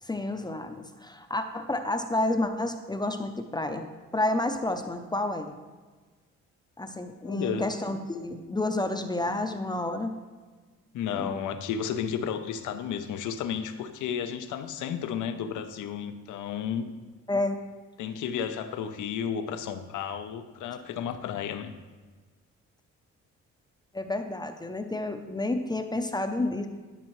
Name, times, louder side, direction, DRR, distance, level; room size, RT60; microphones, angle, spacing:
voice 1, 0.0-3.9 4.1-5.5 6.8-10.2 11.1-11.3 17.3-17.6 23.9-26.7, left 2 dB, 15° left, 6 dB, 0.6 m, -30 dB
voice 2, 7.2-7.6 10.9-16.9 18.0-21.7, left 8 dB, 80° left, 9 dB, 0.7 m, -32 dB
12.0 x 5.5 x 3.1 m, 1.3 s
cardioid pair, 90°, 30 cm